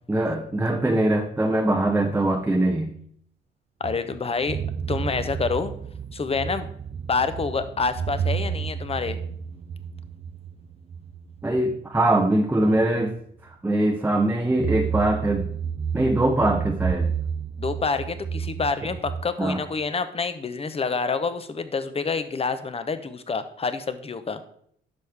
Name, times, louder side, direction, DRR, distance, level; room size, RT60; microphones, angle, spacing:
voice 1, 0.1-2.9 11.4-13.1 13.4-15.5 15.9-17.1 19.4-19.6, right 1 dB, 10° right, 3 dB, 0.8 m, -22 dB
voice 2, 3.8-4.6 4.9-5.7 6.1-6.7 7.1-9.2 17.6-24.4, left 4 dB, 30° left, 11 dB, 0.9 m, -27 dB
sound 1, 3.8-12.4 12.8-12.9 14.6-19.2, right 7 dB, 35° right, 0.5 m, -31 dB
10.5 x 6.3 x 3.5 m, 0.67 s
cardioid pair, 90°, 20 cm